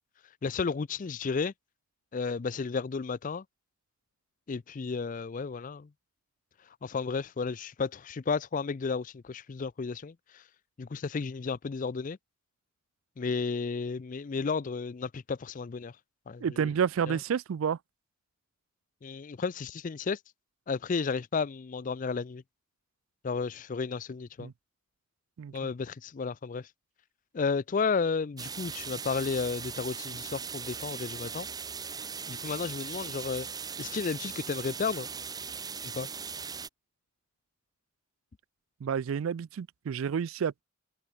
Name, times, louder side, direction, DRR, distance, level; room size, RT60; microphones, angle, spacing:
voice 1, 0.4-1.5 2.1-3.4 4.5-5.9 6.8-10.4 10.8-12.2 13.2-15.9 16.3-16.7 17.1-17.2 19.0-20.2 20.7-22.4 23.2-24.5 25.5-26.7 27.3-31.5 32.3-35.1 35.8-36.1, left 5 dB, 40° left, 0.4 m, -33 dB
voice 2, 16.4-17.8 24.4-24.5 25.4-25.7 38.8-40.6, right 7 dB, 75° right, 0.4 m, -30 dB
sound 1, 28.4-36.7, right 6 dB, 20° right, 0.9 m, -39 dB
head